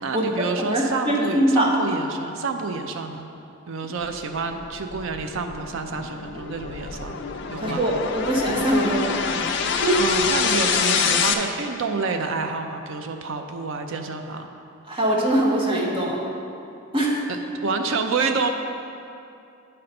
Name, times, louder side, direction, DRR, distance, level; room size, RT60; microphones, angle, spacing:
voice 1, 0.0-3.3 3.7-7.2 7.5-7.9 10.0-14.5 17.6-18.5, right 4 dB, 65° right, 5 dB, 0.5 m, -28 dB
voice 2, 0.6-1.7 7.6-9.1 9.8-10.0 14.9-16.2 16.9-17.2, right 1 dB, 25° right, -3 dB, 1.0 m, -22 dB
sound 1, 4.4-11.3, left 6 dB, 55° left, 0.4 m, -26 dB
8.6 x 4.2 x 5.3 m, 2.6 s
head